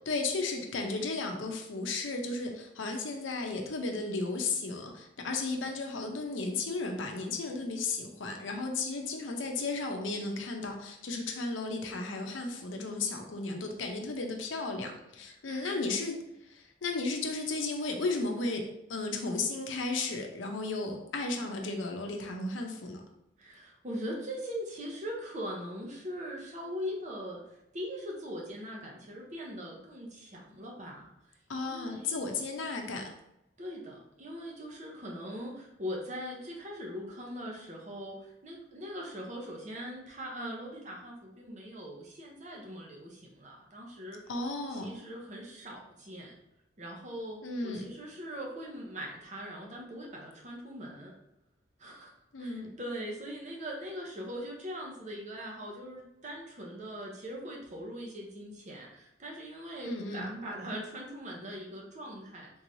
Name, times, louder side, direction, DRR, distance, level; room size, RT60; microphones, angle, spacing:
voice 1, 0.1-18.6 18.9-23.0 31.5-33.1 44.3-44.9 47.4-47.9 52.3-52.7 59.8-60.3, left 3 dB, 90° left, 3 dB, 0.6 m, -34 dB
voice 2, 15.3-15.8 23.4-31.1 31.6-32.2 33.6-44.2 44.7-46.3 46.8-51.1 51.8-52.1 52.4-62.5, equal, 40° right, -1 dB, 0.8 m, -41 dB
3.8 x 3.0 x 2.6 m, 0.86 s
head